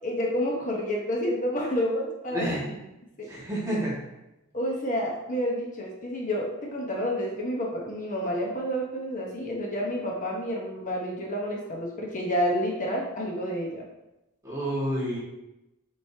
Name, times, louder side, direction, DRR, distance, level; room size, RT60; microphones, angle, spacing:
voice 1, 0.0-2.6 3.2-3.3 4.5-13.9, equal, 40° left, -1 dB, 1.1 m, -29 dB
voice 2, 2.3-2.7 3.3-4.0 14.4-15.2, equal, 15° right, -8 dB, 1.9 m, -29 dB
8.0 x 5.2 x 2.8 m, 0.94 s
head